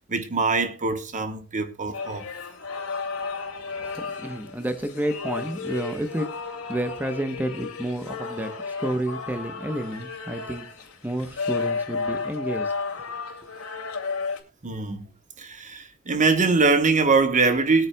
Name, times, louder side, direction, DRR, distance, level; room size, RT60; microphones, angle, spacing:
voice 1, 0.0-2.2 14.6-15.1 15.4-17.9, right 4 dB, 35° right, 1.2 m, -23 dB
sound 1, 1.9-14.4, left 4 dB, 80° left, 2.7 m, -33 dB
voice 2, 3.7-10.7 11.0-12.7, right 1 dB, 10° right, 1.0 m, -30 dB
21.5 x 9.0 x 2.3 m
head